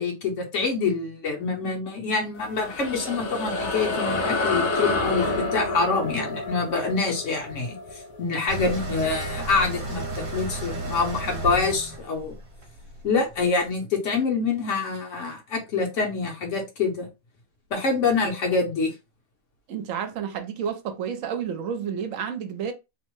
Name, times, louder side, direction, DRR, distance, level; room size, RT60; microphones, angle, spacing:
voice 1, 0.0-7.8 8.2-12.4 13.0-17.1 17.7-18.9, left 4 dB, 65° left, 1.2 m, -26 dB
sound 1, 2.4-9.2, left 2 dB, 85° left, 1.1 m, -29 dB
sound 2, 8.5-13.4, right 2 dB, 45° right, 1.1 m, -33 dB
voice 2, 19.7-22.7, right 7 dB, 75° right, 1.0 m, -30 dB
2.9 x 2.1 x 3.0 m
omnidirectional pair, 1.4 m